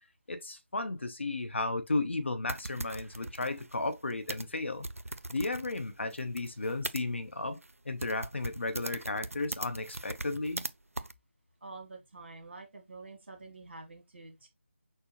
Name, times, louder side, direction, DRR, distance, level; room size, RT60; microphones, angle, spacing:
voice 1, 0.3-4.9 5.3-7.6 7.8-10.6, left 2 dB, 55° left, 0.9 m, -34 dB
sound 1, 2.5-7.0 7.6-7.7 8.0-10.7 11.0-11.1, right 2 dB, 80° right, 0.5 m, -40 dB
voice 2, 11.6-14.5, right 3 dB, 50° right, 1.9 m, -48 dB
6.3 x 2.3 x 3.2 m
figure-of-eight pair, 160°, 7 cm